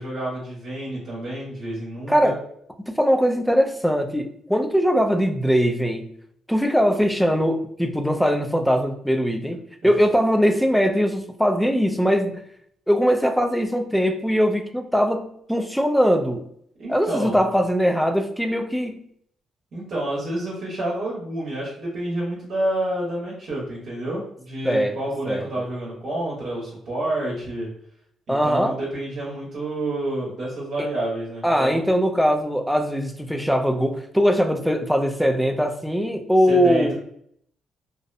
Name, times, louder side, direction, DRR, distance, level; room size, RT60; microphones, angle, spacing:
voice 1, 0.0-2.3 9.8-9.9 16.8-17.4 19.7-27.7 28.3-31.8 36.5-36.9, right 1 dB, 60° right, -5 dB, 0.9 m, -29 dB
voice 2, 2.1-2.4 2.9-6.1 6.5-12.4 12.9-16.5 16.9-19.0 24.6-25.0 25.3-25.5 28.3-28.7 31.4-36.9, equal, ahead, 5 dB, 0.4 m, -21 dB
2.6 x 2.0 x 2.5 m, 0.67 s
cardioid pair, 90°, 0 cm